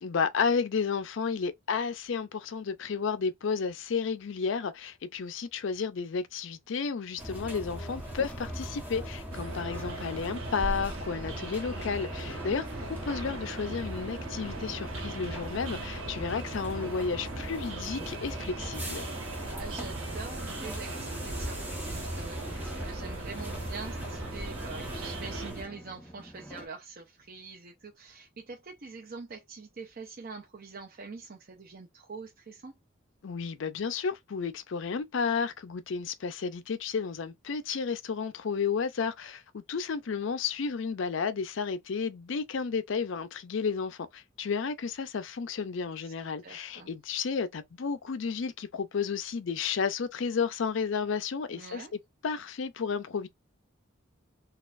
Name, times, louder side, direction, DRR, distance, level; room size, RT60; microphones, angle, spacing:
voice 1, 0.0-19.0 33.2-53.3, left 5 dB, 65° left, 0.4 m, -32 dB
sound 1, 7.2-25.6, right 1 dB, 10° right, 1.0 m, -39 dB
sound 2, 7.3-26.7, equal, 5° left, 0.5 m, -51 dB
sound 3, 9.3-25.5, right 3 dB, 90° right, 1.1 m, -42 dB
voice 2, 12.4-13.0 19.6-32.8 46.0-46.1 46.4-46.9 51.5-51.9, right 4 dB, 45° right, 0.5 m, -45 dB
4.1 x 2.4 x 2.4 m
head